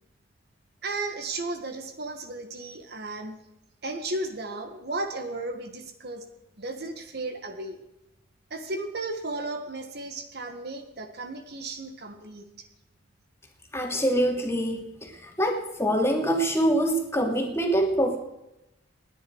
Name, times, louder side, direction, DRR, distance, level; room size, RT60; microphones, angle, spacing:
voice 1, 0.8-3.3 3.8-6.2 6.6-7.8 8.5-12.4, right 2 dB, 55° right, 6 dB, 1.7 m, -34 dB
voice 2, 13.7-18.2, right 1 dB, 15° left, 1 dB, 2.7 m, -25 dB
29.0 x 10.5 x 4.7 m, 0.91 s
head